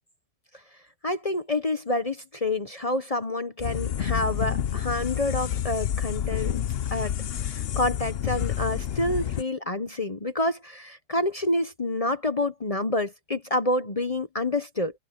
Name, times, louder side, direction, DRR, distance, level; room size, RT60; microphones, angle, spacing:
voice 1, 1.0-6.6 6.9-14.9, left 2 dB, 30° left, 0.6 m, -28 dB
sound 1, 3.6-9.4, left 10 dB, 90° left, 0.5 m, -29 dB
omnidirectional pair, 1.9 m